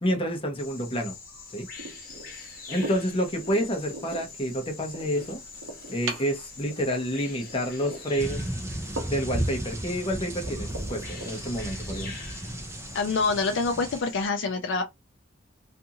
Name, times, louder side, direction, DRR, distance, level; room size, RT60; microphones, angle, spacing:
voice 1, 0.0-1.2 1.5-1.7 2.7-5.4 5.9-8.4 9.1-12.2, equal, 30° left, 0.8 m, -29 dB
Bird vocalization bird call bird song, 0.6-14.3, left 4 dB, 50° left, 1.1 m, -44 dB
sound 1, 1.8-13.6, right 2 dB, 70° right, 0.7 m, -42 dB
sound 2, 8.2-14.0, right 1 dB, 15° right, 0.4 m, -34 dB
voice 2, 12.9-14.8, left 4 dB, 65° left, 0.5 m, -26 dB
2.6 x 2.4 x 2.7 m
head